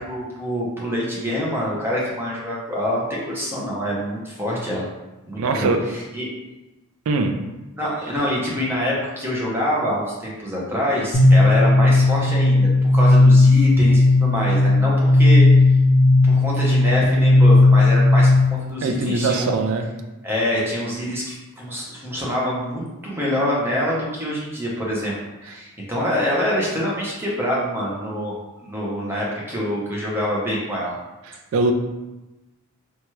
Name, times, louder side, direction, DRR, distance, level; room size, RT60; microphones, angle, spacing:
voice 1, 0.0-4.9 5.3-6.3 7.8-15.4 16.2-18.3 18.7-19.5 20.2-25.1 25.4-31.0, equal, 10° right, -5 dB, 0.6 m, -25 dB
voice 2, 5.4-5.8 7.1-7.3 18.8-19.9 31.3-31.7, right 3 dB, 65° right, 5 dB, 0.3 m, -21 dB
sound 1, 11.1-18.7, left 2 dB, 55° left, 0.5 m, -15 dB
2.9 x 2.3 x 3.0 m, 1.0 s
head